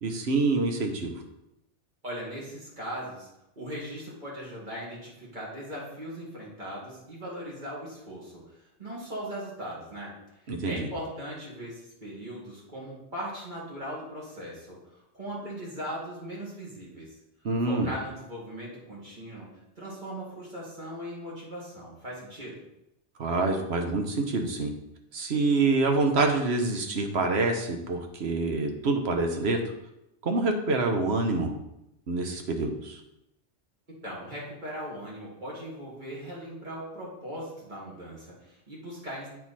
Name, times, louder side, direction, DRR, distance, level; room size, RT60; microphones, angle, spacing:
voice 1, 0.0-1.1 10.5-10.9 17.4-17.9 23.2-24.7 25.1-29.6 30.2-31.5 32.1-33.0, right 3 dB, 65° right, 4 dB, 1.2 m, -26 dB
voice 2, 2.0-3.3 3.6-8.4 8.8-10.1 10.7-17.2 17.6-19.5 19.8-22.6 34.0-39.3, equal, 45° right, -5 dB, 2.4 m, -39 dB
8.2 x 4.6 x 4.2 m, 0.85 s
omnidirectional pair, 1.2 m